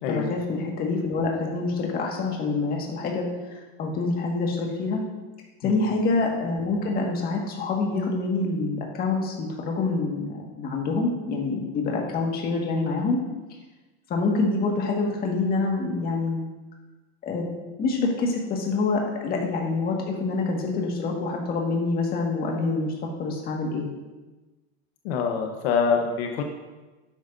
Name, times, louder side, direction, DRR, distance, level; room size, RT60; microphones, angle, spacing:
voice 1, 0.1-5.0 5.6-13.2 14.1-16.5 17.2-23.9, left 3 dB, 30° left, 0 dB, 1.8 m, -26 dB
voice 2, 25.0-26.4, left 6 dB, 70° left, 3 dB, 1.1 m, -25 dB
11.5 x 9.0 x 2.7 m, 1.2 s
supercardioid pair, 150°, 32 cm